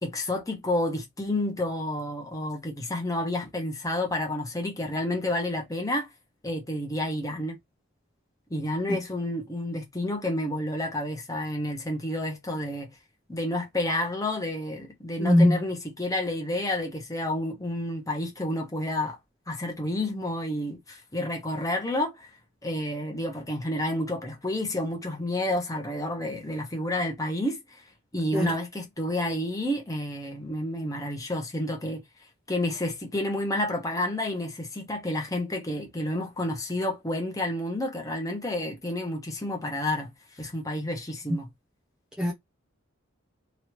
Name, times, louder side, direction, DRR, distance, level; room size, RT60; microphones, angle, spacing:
voice 1, 0.0-6.1 6.4-7.6 8.5-12.9 13.3-19.2 19.5-22.3 22.6-27.8 28.1-32.0 32.5-41.5, left 1 dB, 15° left, 0.9 m, -30 dB
voice 2, 15.2-15.5 28.3-28.5 42.2-42.3, left 1 dB, 5° right, 0.6 m, -20 dB
3.1 x 2.7 x 3.0 m
head